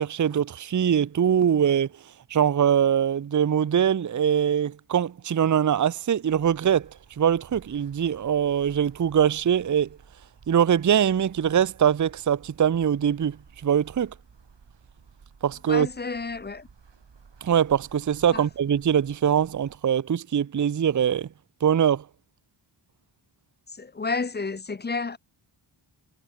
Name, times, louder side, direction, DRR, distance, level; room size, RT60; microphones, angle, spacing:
voice 1, 0.0-1.9 2.3-6.9 7.2-9.9 10.5-13.4 13.6-14.1 15.4-15.9 17.4-21.3 21.6-22.0, right 8 dB, 40° right, 0.6 m, -22 dB
sound 1, 6.3-19.8, right 5 dB, 60° right, 7.4 m, -54 dB
voice 2, 15.7-16.7 18.3-18.4 23.8-25.2, left 4 dB, 20° left, 0.5 m, -30 dB
wide cardioid pair, 130°, 49 cm